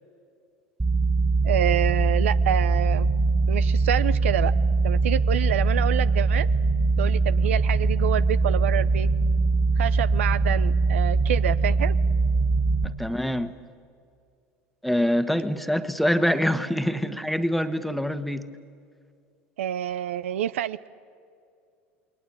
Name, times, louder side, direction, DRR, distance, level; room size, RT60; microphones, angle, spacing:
sound 1, 0.8-12.8, right 3 dB, 15° right, 2.2 m, -22 dB
voice 1, 1.4-3.1 3.5-4.5 4.8-6.5 7.0-9.1 9.8-11.9 19.6-20.9, right 12 dB, 75° right, 15 dB, 0.6 m, -27 dB
voice 2, 12.8-13.5 14.8-18.5, equal, ahead, 10 dB, 1.4 m, -25 dB
29.0 x 21.5 x 8.8 m, 2.3 s
figure-of-eight pair, 75°, 7 cm